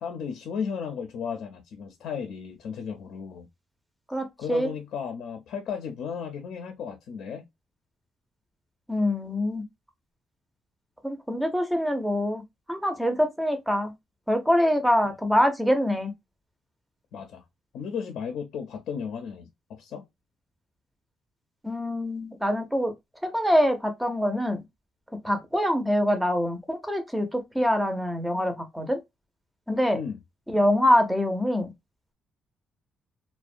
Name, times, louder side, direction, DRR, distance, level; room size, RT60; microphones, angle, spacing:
voice 1, 0.0-3.5 4.4-7.4 17.1-17.4 17.7-20.0 29.9-30.2, left 6 dB, 75° left, 0.4 m, -34 dB
voice 2, 4.1-4.7 8.9-9.6 11.0-12.4 12.7-13.9 14.3-16.1 21.6-22.9 23.2-24.6 25.2-29.0 29.7-30.0 30.5-31.7, equal, 5° right, 0.5 m, -24 dB
2.4 x 2.1 x 2.5 m
cardioid pair, 90°, 0 cm